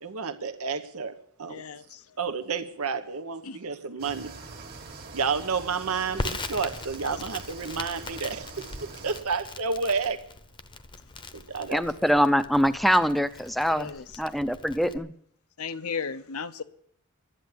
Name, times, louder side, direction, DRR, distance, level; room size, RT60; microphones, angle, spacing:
voice 1, 0.0-1.6 2.2-4.3 5.1-10.2 11.3-11.8, right 5 dB, 85° right, 1.0 m, -30 dB
voice 2, 1.5-2.2 3.4-3.6 7.0-7.2 13.7-14.2 15.6-16.6, left 5 dB, 80° left, 0.8 m, -36 dB
sound 1, 4.0-9.2, right 3 dB, 45° right, 1.8 m, -43 dB
Crackle, 6.2-15.0, left 3 dB, 25° left, 0.8 m, -40 dB
voice 3, 11.7-13.9 14.2-15.1, equal, ahead, 0.6 m, -23 dB
12.5 x 10.5 x 8.3 m
head